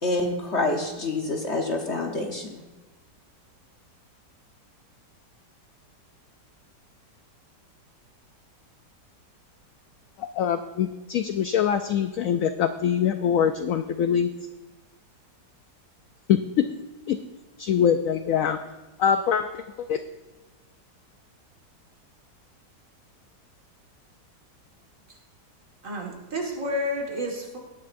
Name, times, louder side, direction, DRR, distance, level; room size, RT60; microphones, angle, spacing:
voice 1, 0.0-2.6, left 2 dB, 45° left, 2 dB, 1.2 m, -27 dB
voice 2, 10.2-14.3 16.3-16.7 17.1-17.2 17.6-18.6 19.0-20.0, left 8 dB, 75° left, 9 dB, 0.7 m, -24 dB
voice 3, 25.8-27.6, left 1 dB, 45° right, -1 dB, 2.1 m, -30 dB
18.0 x 10.5 x 2.6 m, 1.1 s
omnidirectional pair, 1.9 m